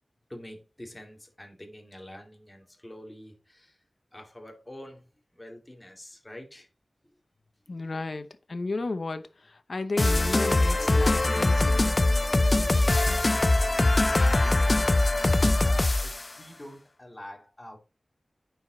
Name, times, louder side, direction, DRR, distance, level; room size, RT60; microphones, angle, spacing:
voice 1, 0.3-3.8 4.1-5.0 5.3-6.7 7.8-7.9 10.7-11.1 14.1-17.8, left 1 dB, 20° left, 2.4 m, -47 dB
voice 2, 7.7-11.9, left 3 dB, 60° left, 0.8 m, -33 dB
sound 1, 10.0-16.3, left 2 dB, 35° left, 0.5 m, -22 dB
8.9 x 4.9 x 3.8 m
wide cardioid pair, 75°, 0 cm